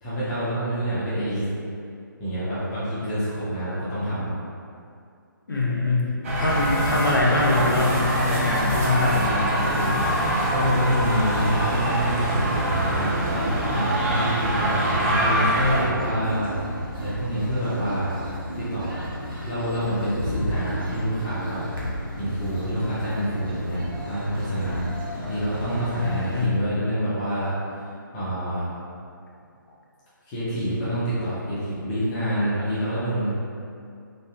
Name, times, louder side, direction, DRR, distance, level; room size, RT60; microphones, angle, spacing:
voice 1, 0.0-1.5 2.2-4.3 10.5-16.7 17.0-18.1 18.6-19.0 19.3-21.6 22.2-23.8 24.1-27.6 28.1-28.7 30.3-33.3, equal, 20° left, -11 dB, 0.5 m, -27 dB
voice 2, 5.5-10.1 26.0-26.5, left 2 dB, 70° left, -4 dB, 0.6 m, -24 dB
sound 1, 6.2-15.9, right 1 dB, 40° right, 0.4 m, -24 dB
sound 2, 8.1-26.5, equal, 85° right, 0.7 m, -34 dB
sound 3, 17.4-25.6, right 1 dB, 60° right, 1.1 m, -44 dB
2.6 x 2.3 x 2.3 m, 2.4 s
figure-of-eight pair, 140°, 11 cm